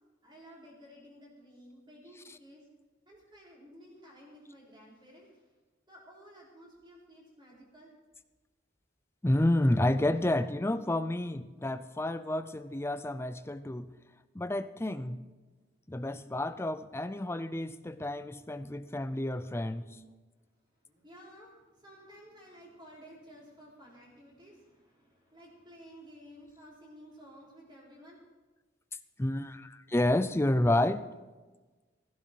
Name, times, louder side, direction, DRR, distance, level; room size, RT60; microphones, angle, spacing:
voice 1, 0.2-2.6 3.1-5.4 5.9-7.9 18.8-18.9 20.8-28.2, equal, 25° right, -4 dB, 4.5 m, -54 dB
voice 2, 9.2-13.9 14.3-15.2 15.9-20.0 29.2-31.1, left 1 dB, 15° left, 12 dB, 0.5 m, -30 dB
15.5 x 15.5 x 4.7 m, 1.2 s
head